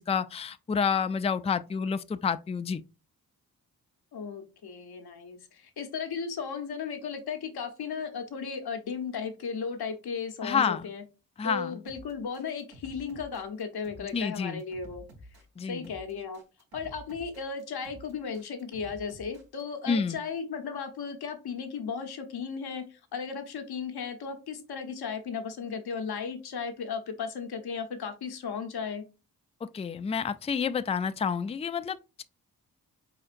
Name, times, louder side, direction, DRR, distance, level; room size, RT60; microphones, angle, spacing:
voice 1, 0.0-2.8 10.4-10.9 11.4-11.8 14.1-14.6 15.6-15.9 19.9-20.2 29.6-32.2, left 6 dB, 15° left, 0.4 m, -29 dB
voice 2, 4.1-11.0 11.4-15.0 15.7-16.4 16.7-29.0, left 6 dB, 75° left, 1.0 m, -35 dB
sound 1, 11.9-19.6, equal, 65° right, 1.5 m, -51 dB
4.2 x 3.8 x 2.4 m
supercardioid pair, 45°, 39 cm